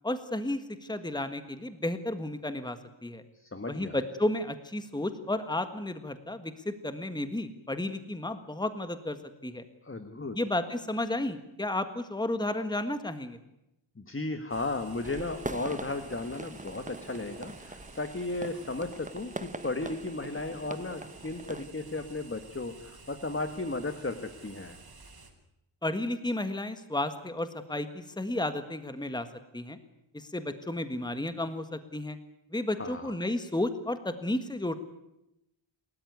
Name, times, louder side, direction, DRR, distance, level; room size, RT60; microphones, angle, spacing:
voice 1, 0.0-3.2 3.7-9.2 9.4-9.6 10.3-13.4 25.8-29.3 29.5-29.8 30.1-32.2 32.5-34.8, left 1 dB, 10° left, 9 dB, 1.7 m, -32 dB
voice 2, 3.3-4.0 9.8-10.4 13.9-24.8 32.8-33.1, left 2 dB, 25° left, 8 dB, 1.7 m, -35 dB
sound 1, 14.5-25.3, right 3 dB, 50° right, 4.4 m, -52 dB
sound 2, 15.0-21.7, right 2 dB, 15° right, 1.0 m, -43 dB
29.0 x 13.5 x 9.5 m, 0.86 s
wide cardioid pair, 90°, 47 cm